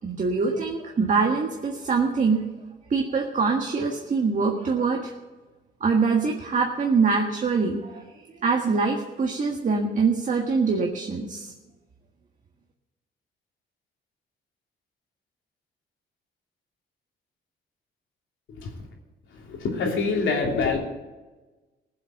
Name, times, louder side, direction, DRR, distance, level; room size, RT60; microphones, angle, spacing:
voice 1, 0.0-2.4 2.9-5.2 5.8-8.1 8.4-11.5, right 4 dB, 40° right, 0 dB, 1.7 m, -24 dB
voice 2, 19.5-20.8, left 4 dB, 75° left, 1 dB, 3.1 m, -25 dB
16.5 x 7.5 x 7.8 m, 1.2 s
cardioid pair, 90°, 20 cm